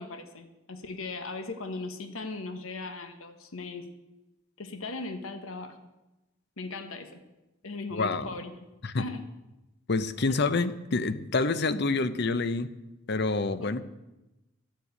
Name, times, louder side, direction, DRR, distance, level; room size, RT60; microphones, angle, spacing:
voice 1, 0.0-3.9 4.6-5.8 6.6-7.2 7.6-8.6 9.0-9.2 10.4-10.5 13.6-13.7, left 3 dB, 85° left, 7 dB, 1.2 m, -38 dB
voice 2, 7.9-8.3 8.8-9.0 9.9-12.7 13.1-13.8, left 3 dB, 55° left, 13 dB, 0.7 m, -27 dB
12.5 x 7.5 x 8.3 m, 1.0 s
head